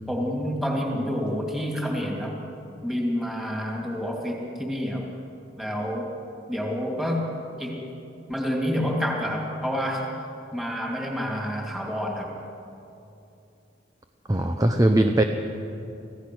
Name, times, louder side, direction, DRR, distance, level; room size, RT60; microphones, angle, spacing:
voice 1, 0.1-2.4 2.8-5.1 5.6-6.1 6.5-7.8 8.3-10.1 10.5-12.3, equal, ahead, -1 dB, 2.8 m, -28 dB
voice 2, 14.3-15.2, right 1 dB, 20° right, 5 dB, 0.8 m, -20 dB
25.5 x 16.0 x 6.3 m, 2.7 s
head